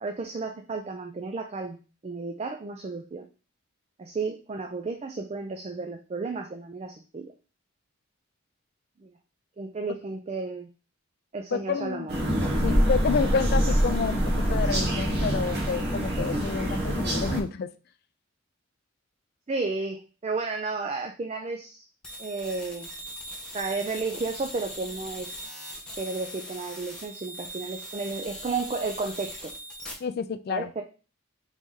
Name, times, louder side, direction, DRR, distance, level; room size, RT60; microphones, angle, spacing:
voice 1, 0.0-1.8 2.0-3.3 4.0-7.3 9.0-9.1 9.6-10.7 11.3-12.2 12.4-12.6 19.5-21.9 22.2-22.9 23.5-25.3 26.0-29.5 30.5-30.8, right 3 dB, 30° right, 4 dB, 0.4 m, -33 dB
voice 2, 11.5-12.1 12.6-17.7 30.0-30.7, left 5 dB, 50° left, 12 dB, 0.3 m, -29 dB
sound 1, 12.1-17.4, equal, 55° right, 1.2 m, -25 dB
sound 2, 22.0-29.9, equal, 5° left, 0.9 m, -40 dB
4.0 x 3.2 x 3.6 m, 0.34 s
head